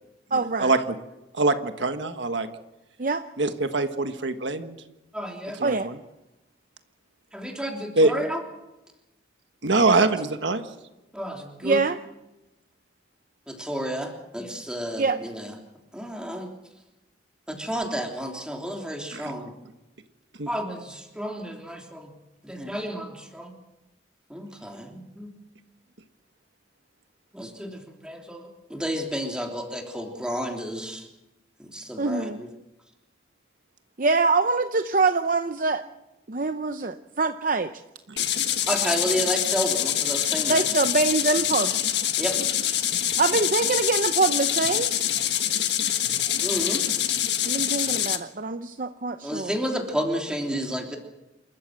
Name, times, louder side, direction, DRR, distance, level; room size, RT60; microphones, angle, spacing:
voice 1, 0.3-0.7 3.0-3.2 5.6-5.9 11.6-12.0 15.0-15.2 32.0-32.4 34.0-35.8 36.3-37.8 40.5-41.8 43.2-44.9 47.4-49.5, right 3 dB, 45° right, 9 dB, 0.7 m, -24 dB
voice 2, 1.3-2.5 3.4-4.8 5.6-6.0 8.0-8.1 9.6-10.6 19.1-19.2 20.4-20.5 38.1-38.2, right 3 dB, 75° right, 8 dB, 1.5 m, -23 dB
voice 3, 5.1-5.6 7.3-8.4 9.7-9.9 11.1-11.8 13.5-15.5 15.9-16.5 17.5-19.5 20.5-22.1 22.4-23.5 24.3-25.3 27.3-31.1 31.6-32.5 38.7-40.8 42.2-42.3 46.4-46.9 49.2-51.0, equal, 5° right, 1 dB, 3.2 m, -31 dB
sound 1, 38.2-48.2, left 11 dB, 65° left, 1.6 m, -25 dB
28.0 x 14.0 x 7.8 m, 0.98 s
head